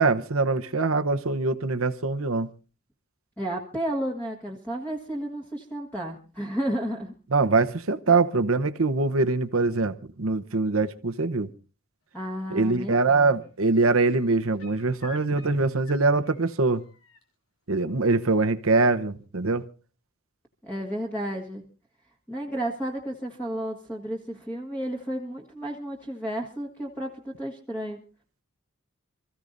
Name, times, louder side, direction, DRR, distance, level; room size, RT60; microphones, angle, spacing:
voice 1, 0.0-2.5 7.3-11.5 12.5-16.8 17.7-19.7, right 3 dB, 75° right, 1.0 m, -23 dB
voice 2, 3.4-7.1 12.1-13.4 20.6-21.6 22.3-28.0, right 1 dB, 10° left, 1.7 m, -32 dB
sound 1, 12.5-12.9 13.2-17.2 18.9-19.0, left 2 dB, 85° left, 3.7 m, -50 dB
28.0 x 15.0 x 2.6 m
head